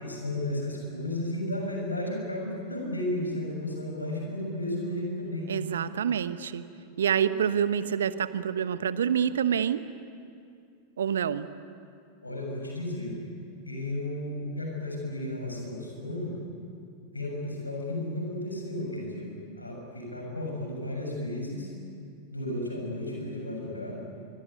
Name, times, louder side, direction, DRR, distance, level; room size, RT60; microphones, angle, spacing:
voice 1, 0.0-5.5 12.2-13.1 13.7-16.3 17.1-19.3 19.6-21.7 22.3-23.9, left 1 dB, 85° left, 0 dB, 7.1 m, -33 dB
voice 2, 5.5-6.6 7.0-9.8 11.0-11.5, right 8 dB, 65° right, 14 dB, 1.1 m, -27 dB
24.5 x 23.5 x 9.5 m, 2.4 s
figure-of-eight pair, 90°, 0 cm